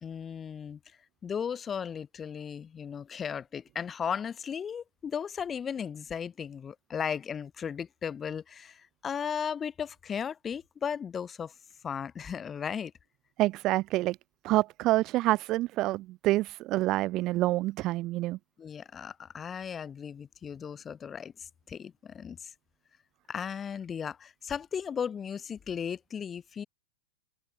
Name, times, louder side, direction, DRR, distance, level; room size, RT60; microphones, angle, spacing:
voice 1, 0.0-11.5 11.8-12.9 18.6-22.5 23.3-26.6, left 7 dB, 15° left, 1.6 m, -36 dB
voice 2, 13.4-14.2 14.4-18.4, right 17 dB, 30° right, 0.4 m, -27 dB
supercardioid pair, 150°, 0 cm